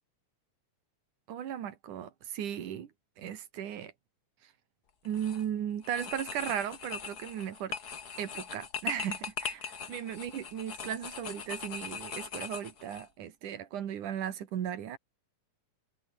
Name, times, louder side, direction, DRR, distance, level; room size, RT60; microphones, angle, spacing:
voice 1, 1.3-2.9 3.2-3.9 4.4-4.5 5.1-7.8 8.2-15.0, right 9 dB, 85° right, 3.4 m, -36 dB
sound 1, 5.0-5.4 5.8-13.1, left 6 dB, 40° left, 1.8 m, -40 dB
omnidirectional pair, 3.5 m